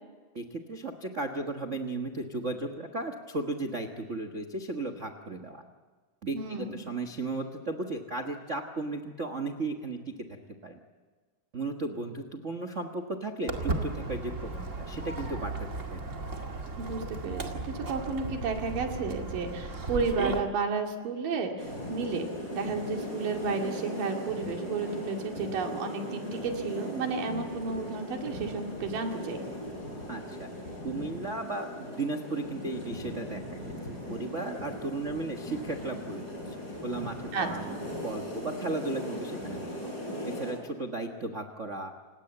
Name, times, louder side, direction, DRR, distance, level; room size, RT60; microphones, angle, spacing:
voice 1, 0.3-5.6 6.2-10.1 10.6-10.8 11.5-16.0 30.1-30.5 30.8-39.9 40.2-41.9, right 2 dB, 60° right, 6 dB, 0.7 m, -35 dB
voice 2, 6.3-6.8 16.8-29.4 37.3-37.8, right 4 dB, 85° right, 3 dB, 4.1 m, -32 dB
Walk footsteps, 13.5-20.4, right 2 dB, 25° right, 1.9 m, -35 dB
sound 1, 21.6-40.5, left 1 dB, 25° left, 7.8 m, -39 dB
28.5 x 18.5 x 8.0 m, 1.4 s
omnidirectional pair, 3.7 m